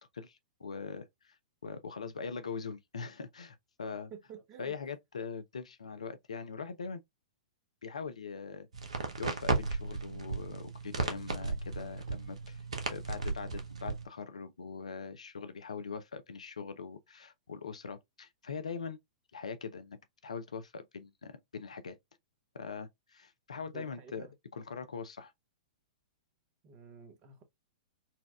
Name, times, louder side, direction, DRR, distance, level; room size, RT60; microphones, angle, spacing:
voice 1, 0.1-1.4 1.6-4.1 4.6-7.0 7.8-8.7 9.2-12.6 12.9-19.0 19.3-22.0 22.5-24.3 24.5-25.3, left 5 dB, 70° left, 0.5 m, -42 dB
voice 2, 4.1-4.8 23.7-24.3 26.6-27.4, right 6 dB, 35° right, 0.9 m, -50 dB
sound 1, 8.7-14.0, right 4 dB, 70° right, 0.8 m, -35 dB
4.1 x 2.3 x 2.3 m
figure-of-eight pair, 105°, 4 cm